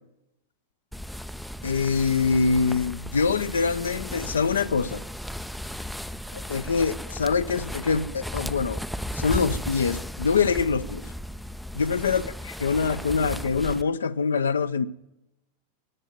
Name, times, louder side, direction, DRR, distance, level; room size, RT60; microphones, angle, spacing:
sound 1, 0.9-13.8, equal, ahead, 0.5 m, -35 dB
voice 1, 1.6-5.0 6.3-8.8 9.1-11.0 11.7-12.2 12.6-14.9, left 5 dB, 70° left, 0.6 m, -24 dB
13.5 x 8.9 x 8.9 m
figure-of-eight pair, 90°, 0 cm